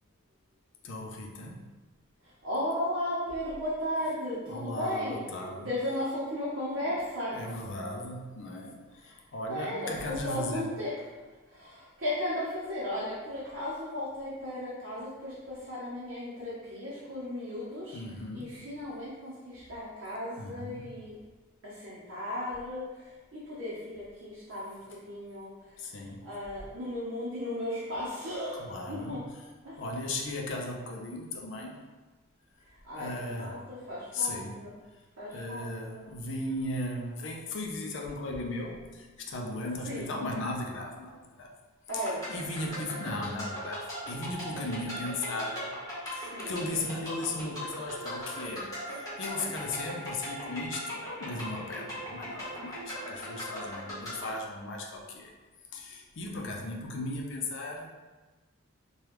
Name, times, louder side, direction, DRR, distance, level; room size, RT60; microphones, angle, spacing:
voice 1, 0.8-1.7 4.5-5.7 7.3-10.7 17.9-18.6 20.4-20.9 25.8-26.2 28.5-29.2 29.8-31.8 32.9-33.6 34.1-34.7 35.3-41.5 41.9-45.7 46.1-55.3 55.7-57.9, left 2 dB, 60° left, 0 dB, 0.5 m, -37 dB
voice 2, 2.4-5.3 5.5-7.4 9.0-9.2 9.5-9.9 10.2-10.9 11.5-18.0 18.3-21.2 21.6-23.1 23.5-25.5 25.9-29.2 29.6-29.8 32.8-34.7 35.2-36.0 39.9-40.1 41.9-42.2 46.2-46.6, left 1 dB, 60° right, -8 dB, 0.7 m, -35 dB
sound 1, 41.9-54.3, equal, 15° left, 1.1 m, -39 dB
3.3 x 2.2 x 3.0 m, 1.3 s
head